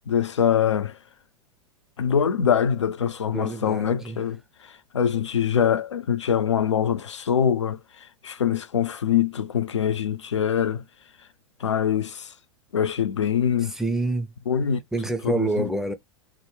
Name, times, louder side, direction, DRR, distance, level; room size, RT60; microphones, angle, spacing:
voice 1, 0.1-1.0 2.0-10.8 11.6-12.3 12.7-13.7 14.5-14.8 15.2-15.6, left 8 dB, 75° left, 0.5 m, -24 dB
voice 2, 3.3-4.2 13.7-14.3 14.9-15.9, right 2 dB, 5° right, 0.5 m, -27 dB
3.6 x 2.1 x 3.2 m
figure-of-eight pair, 95°, 15 cm